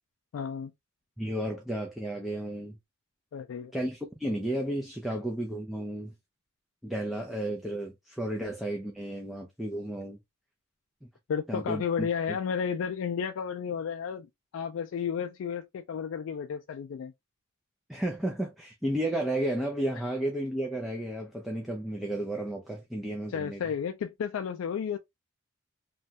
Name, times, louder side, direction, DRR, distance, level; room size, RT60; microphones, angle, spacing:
voice 1, 0.3-0.7 3.3-3.7 11.3-17.1 23.3-25.0, left 7 dB, 75° left, 0.3 m, -32 dB
voice 2, 1.2-2.8 3.7-6.1 6.8-10.2 11.5-12.4 17.9-23.6, right 1 dB, ahead, 0.4 m, -33 dB
3.1 x 2.3 x 2.7 m
head